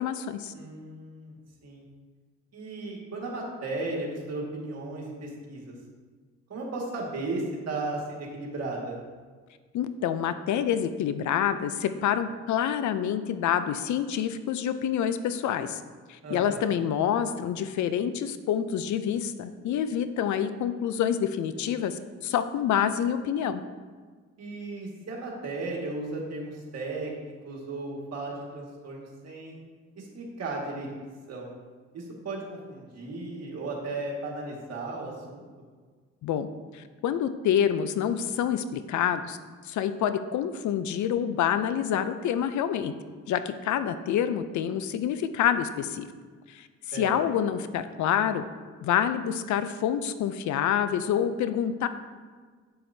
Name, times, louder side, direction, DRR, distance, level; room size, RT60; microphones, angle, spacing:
voice 1, 0.0-0.5 9.7-15.8 16.1-23.6 36.2-36.5 36.7-39.4 39.6-42.9 43.3-46.1 46.5-48.4 48.8-51.9, left 9 dB, 70° left, 11 dB, 0.5 m, -27 dB
voice 2, 0.5-1.8 2.5-5.7 6.5-9.0 16.2-16.7 24.4-29.6 30.0-30.9 31.3-31.5 31.9-35.4 46.9-47.1, right 2 dB, 55° right, -2 dB, 1.9 m, -35 dB
7.8 x 7.6 x 2.7 m, 1.5 s
cardioid pair, 90°, 30 cm